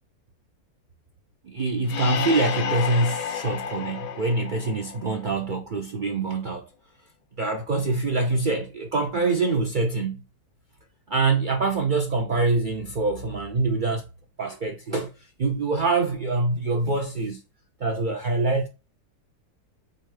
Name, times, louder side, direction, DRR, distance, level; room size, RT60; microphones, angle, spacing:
voice 1, 1.4-6.7 7.4-10.2 11.1-14.0 14.4-15.1 15.4-17.4 17.8-18.7, right 3 dB, 80° right, 0.4 m, -25 dB
sound 1, 1.9-5.5, left 8 dB, 70° left, 1.1 m, -31 dB
6.5 x 2.5 x 3.3 m
omnidirectional pair, 1.6 m